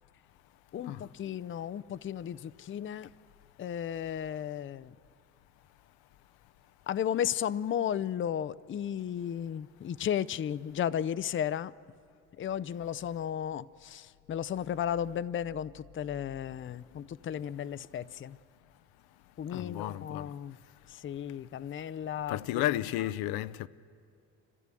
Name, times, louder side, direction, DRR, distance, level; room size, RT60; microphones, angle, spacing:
voice 1, 0.7-3.1 3.6-5.0 6.9-11.7 12.4-18.4 19.4-20.6 20.9-22.6, left 9 dB, 35° left, 0.5 m, -34 dB
voice 2, 19.5-20.3 22.3-23.7, left 14 dB, 75° left, 0.6 m, -32 dB
29.5 x 13.5 x 7.6 m
supercardioid pair, 70°, 37 cm